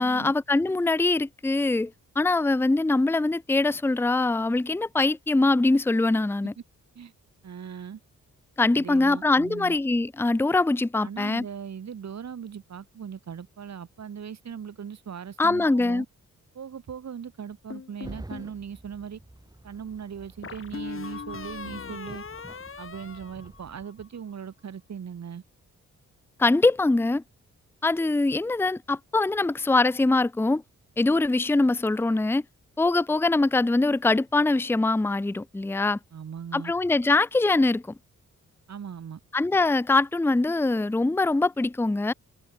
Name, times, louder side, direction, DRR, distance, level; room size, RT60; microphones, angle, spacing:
voice 1, 0.0-1.9 2.2-6.5 8.6-11.4 15.4-16.0 26.4-27.2 27.8-30.6 31.0-32.4 32.8-36.0 36.5-37.8 39.3-42.1, left 2 dB, 10° left, 0.6 m, -23 dB
voice 2, 7.4-8.0 8.8-9.8 11.0-16.1 16.5-19.2 19.6-22.2 22.8-25.4 36.1-36.7 38.7-39.2, right 7 dB, 60° right, 6.4 m, -39 dB
sound 1, 17.7-18.5 20.4-24.0, left 5 dB, 45° left, 6.8 m, -39 dB
sound 2, 18.0-23.9, right 2 dB, 15° right, 6.7 m, -48 dB
open air
wide cardioid pair, 110°, 30 cm